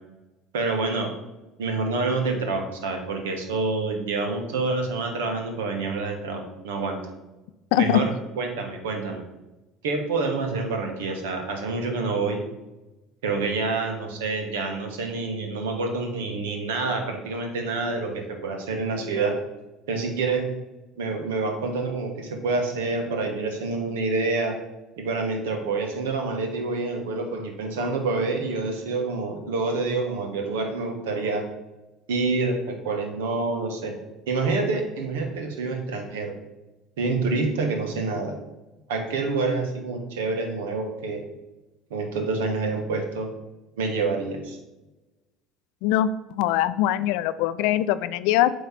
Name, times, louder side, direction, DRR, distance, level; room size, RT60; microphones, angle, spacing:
voice 1, 0.5-1.1 1.6-7.0 7.8-9.2 9.8-12.4 13.2-19.3 19.9-20.5 21.0-24.6 25.0-31.5 32.1-33.9 34.3-36.4 37.0-38.4 38.9-41.2 41.9-43.3 43.7-44.6, right 3 dB, 85° right, 3 dB, 1.2 m, -27 dB
voice 2, 7.7-8.0 45.8-46.1 46.4-48.5, left 13 dB, 75° left, 14 dB, 0.3 m, -22 dB
8.0 x 3.1 x 5.7 m, 1.0 s
hypercardioid pair, 75°, 0 cm